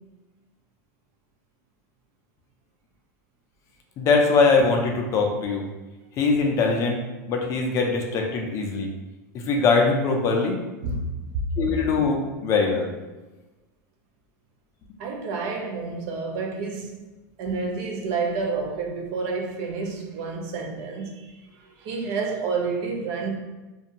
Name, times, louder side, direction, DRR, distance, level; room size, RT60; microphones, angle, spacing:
voice 1, 4.0-5.7 6.2-7.0 7.3-8.9 9.3-10.6 11.6-12.9, left 4 dB, 30° left, 0.4 m, -22 dB
voice 2, 10.8-11.2 15.0-16.9 17.4-21.3 21.6-23.4, right 4 dB, 50° right, 0.4 m, -29 dB
2.5 x 2.2 x 2.8 m
supercardioid pair, 140°, 10 cm